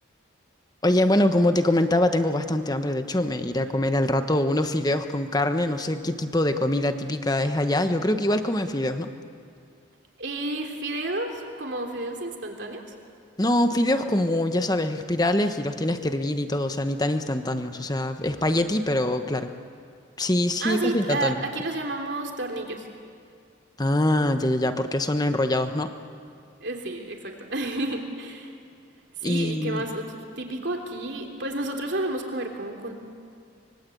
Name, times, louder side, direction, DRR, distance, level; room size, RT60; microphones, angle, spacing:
voice 1, 0.8-9.1 13.4-19.5 20.2-21.4 23.8-25.9 29.2-29.8, left 1 dB, 20° left, 8 dB, 1.1 m, -24 dB
voice 2, 10.2-12.8 20.6-22.9 26.6-28.5 29.2-32.9, right 2 dB, 60° right, 2 dB, 3.2 m, -31 dB
24.5 x 23.0 x 8.5 m, 2.3 s
head